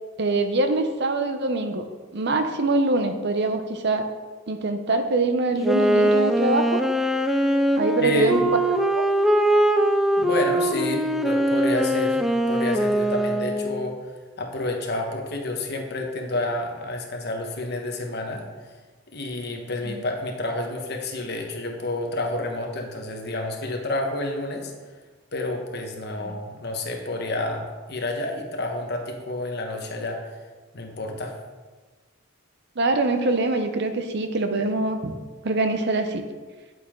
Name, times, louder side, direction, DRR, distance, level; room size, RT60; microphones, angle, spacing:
voice 1, 0.2-1.9 2.1-4.1 4.5-6.8 7.8-8.5 8.9-9.0 19.8-20.0 26.2-26.4 32.8-35.1 35.4-36.2, right 2 dB, 55° right, 7 dB, 0.7 m, -24 dB
Wind instrument woodwind instrument, 5.6-13.9, right 1 dB, ahead, 0.4 m, -22 dB
voice 2, 8.0-8.4 10.2-14.1 14.4-18.5 19.1-24.7 25.3-30.4 30.7-31.3, left 2 dB, 55° left, 2 dB, 1.3 m, -29 dB
9.1 x 8.2 x 3.7 m, 1.4 s
head